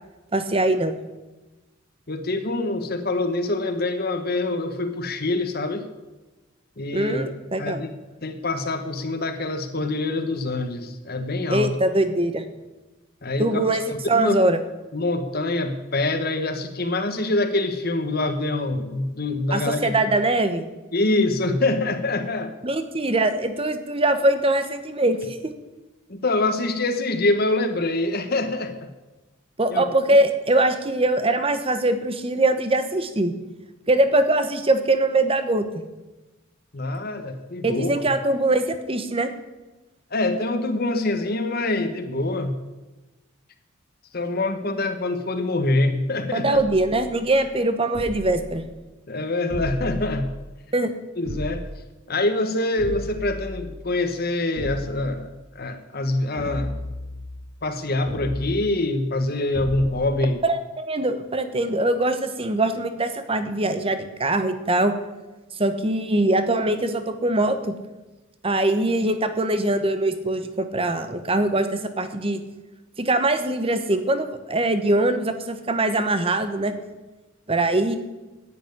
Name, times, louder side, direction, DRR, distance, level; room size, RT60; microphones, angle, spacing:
voice 1, 0.3-0.9 6.9-7.8 11.5-12.4 13.4-13.8 14.1-14.6 19.5-20.6 22.6-25.2 29.6-33.3 33.9-35.6 37.6-39.3 46.3-48.6 50.7-50.9 60.4-64.9 65.6-67.7 68.4-72.4 73.0-76.7 77.5-78.0, right 2 dB, 25° right, 9 dB, 1.1 m, -22 dB
voice 2, 2.1-5.9 6.8-7.2 7.6-7.9 8.2-11.7 13.2-13.6 14.1-14.3 14.9-20.1 20.9-22.5 26.1-28.9 29.7-30.2 36.7-37.9 40.1-42.5 44.1-46.6 49.1-50.3 51.2-51.6 52.1-56.7 57.6-60.4, left 2 dB, 50° left, 7 dB, 1.3 m, -25 dB
sound 1, 46.5-47.3 47.9-48.6 49.5-50.5 51.3-51.9 52.8-53.9 54.6-55.2 56.4-57.5 58.1-58.7 59.5-60.2, equal, 60° right, 3.1 m, -34 dB
10.5 x 9.2 x 9.8 m, 1.1 s
head